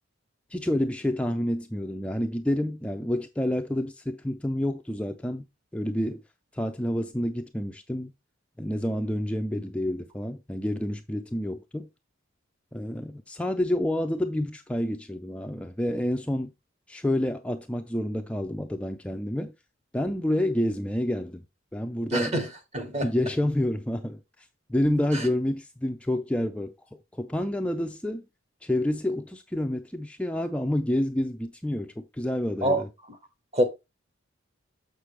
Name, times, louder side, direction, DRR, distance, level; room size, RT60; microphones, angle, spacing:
voice 1, 0.5-5.4 5.7-6.2 6.5-8.1 8.6-11.9 12.7-16.5 16.9-19.5 19.9-21.4 21.7-22.4 23.0-26.7 27.1-28.2 28.6-32.9, left 1 dB, 5° left, 0.4 m, -28 dB
voice 2, 22.1-22.5 22.7-23.1 25.1-25.3 32.6-32.8 33.5-33.6, right 1 dB, 35° right, 1.6 m, -25 dB
6.7 x 6.4 x 3.2 m
head